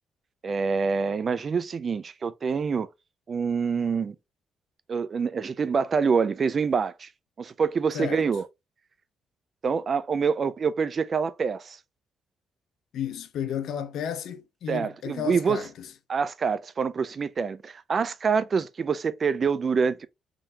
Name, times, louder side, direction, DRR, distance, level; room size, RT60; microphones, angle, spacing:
voice 1, 0.4-2.9 3.3-4.2 4.9-7.1 7.4-8.5 9.6-11.8 14.7-15.7 16.1-20.1, right 5 dB, 40° right, 0.4 m, -26 dB
voice 2, 12.9-15.9, left 9 dB, 75° left, 0.6 m, -33 dB
3.7 x 2.7 x 3.3 m
cardioid pair, 125°, 0 cm